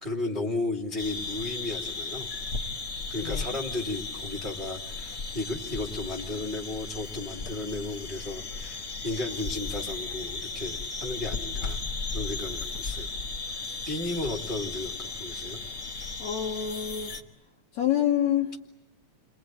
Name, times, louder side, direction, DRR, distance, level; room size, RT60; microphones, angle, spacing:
voice 1, 0.0-2.3 3.1-11.8 12.1-13.1 13.4-13.6 13.9-15.6, left 2 dB, 20° right, -2 dB, 1.8 m, -34 dB
sound 1, 1.0-17.2, left 3 dB, 35° left, 1.5 m, -35 dB
voice 2, 3.2-3.6 14.3-14.4 16.2-17.1 17.7-18.5, left 10 dB, 70° left, 0 dB, 2.6 m, -27 dB
30.0 x 22.0 x 9.0 m, 0.87 s
omnidirectional pair, 3.4 m